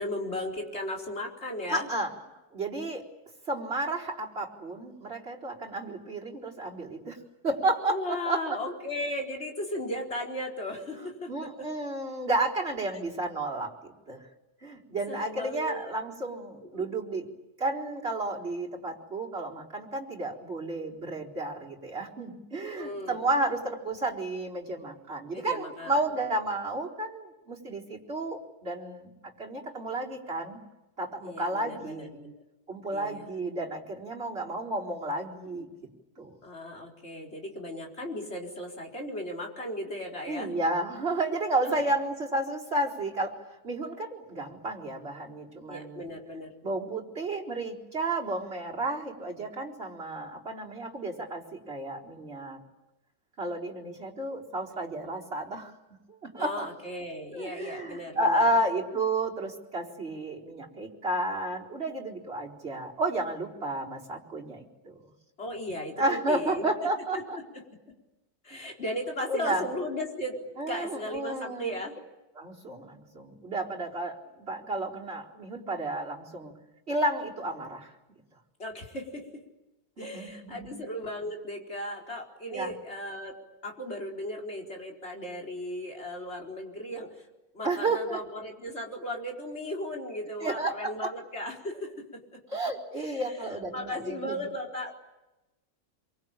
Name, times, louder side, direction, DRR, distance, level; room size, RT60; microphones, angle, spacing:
voice 1, 0.0-1.9 7.9-11.7 12.9-13.0 15.1-15.9 16.7-16.9 22.6-23.2 25.3-26.0 31.2-32.4 32.9-33.3 36.4-40.5 41.6-41.8 45.7-46.5 56.4-58.5 65.4-66.7 68.4-71.9 78.6-79.4 80.0-83.4 83.6-87.3 87.5-92.2 93.0-94.9, left 1 dB, 45° left, -1 dB, 4.6 m, -36 dB
voice 2, 1.7-2.1 2.5-3.0 3.5-7.2 7.4-8.6 11.3-14.3 14.6-17.3 17.6-29.1 29.4-30.6 31.0-32.2 32.7-35.7 36.2-36.4 40.3-43.4 43.6-46.1 46.6-52.6 53.4-55.7 56.1-56.7 57.3-65.1 66.0-67.4 68.5-68.6 69.3-69.7 70.6-71.7 72.4-76.5 76.9-77.9 80.0-80.7 82.5-82.7 87.6-88.2 90.4-91.1 92.5-94.4, right 2 dB, 40° right, -3 dB, 4.4 m, -32 dB
27.0 x 24.0 x 8.9 m, 1.0 s
omnidirectional pair, 1.6 m